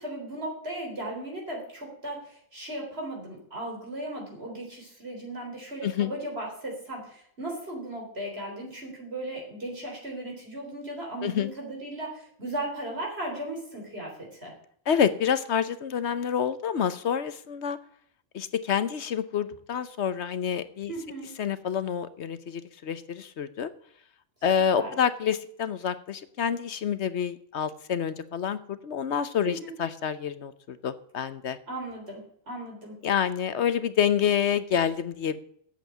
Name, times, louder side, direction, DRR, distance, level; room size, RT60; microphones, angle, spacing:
voice 1, 0.0-14.1 14.4-14.5 20.9-21.3 24.8-25.0 29.4-29.7 31.7-33.0, right 1 dB, 45° right, -1 dB, 4.1 m, -36 dB
voice 2, 14.9-17.8 18.3-20.9 21.4-23.7 24.4-31.6 33.0-35.4, left 8 dB, 60° left, 13 dB, 1.0 m, -28 dB
8.3 x 8.1 x 9.1 m, 0.63 s
omnidirectional pair, 1.4 m